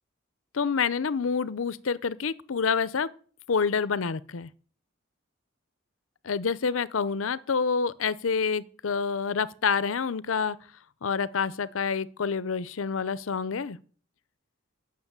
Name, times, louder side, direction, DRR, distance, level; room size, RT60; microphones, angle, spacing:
voice 1, 0.5-3.1 3.5-4.5 6.2-10.6 11.0-13.8, left 5 dB, 90° left, 0.6 m, -27 dB
9.7 x 6.3 x 8.1 m
head